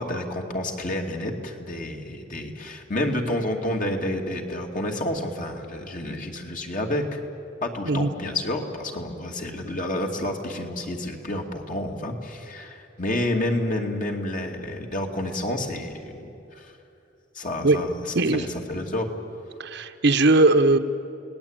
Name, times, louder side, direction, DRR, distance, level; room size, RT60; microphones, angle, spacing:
voice 1, 0.0-7.2 7.6-16.7 17.3-19.1, left 1 dB, 45° left, 2 dB, 2.6 m, -29 dB
voice 2, 19.6-20.8, right 2 dB, 60° right, 8 dB, 1.1 m, -19 dB
29.5 x 19.0 x 9.0 m, 2.8 s
head